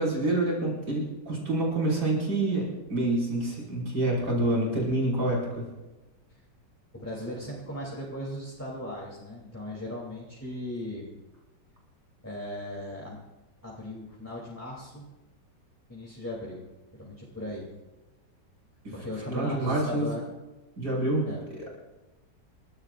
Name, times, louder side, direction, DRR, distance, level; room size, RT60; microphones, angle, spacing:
voice 1, 0.0-5.7 18.8-18.9 19.3-20.1 20.8-21.3 21.6-21.8, right 2 dB, 70° right, -4 dB, 6.4 m, -27 dB
voice 2, 6.9-11.1 12.2-13.2 13.6-15.0 15.9-16.6 16.9-17.7 18.9-20.3 21.3-21.4, left 1 dB, 10° left, -4 dB, 3.1 m, -37 dB
30.0 x 15.5 x 2.6 m, 1.1 s
omnidirectional pair, 1.9 m